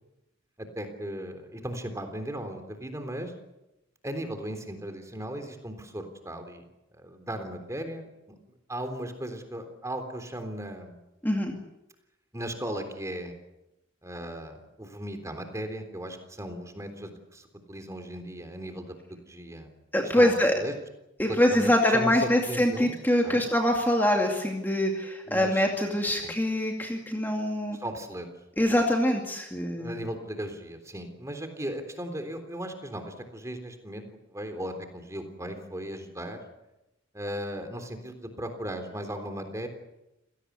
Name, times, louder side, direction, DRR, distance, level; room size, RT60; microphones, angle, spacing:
voice 1, 0.6-3.3 4.0-6.6 6.9-8.1 8.7-11.0 12.3-13.3 14.0-19.0 19.3-19.7 20.2-20.7 21.3-23.0 23.2-23.5 25.3-25.6 26.2-26.3 27.7-28.3 29.8-34.0 34.3-36.4 37.1-39.7, right 1 dB, 15° right, 7 dB, 3.6 m, -37 dB
voice 2, 19.9-20.5 21.2-27.8 28.6-29.9, left 1 dB, 10° left, 1 dB, 2.3 m, -24 dB
27.5 x 18.0 x 8.3 m, 0.94 s
head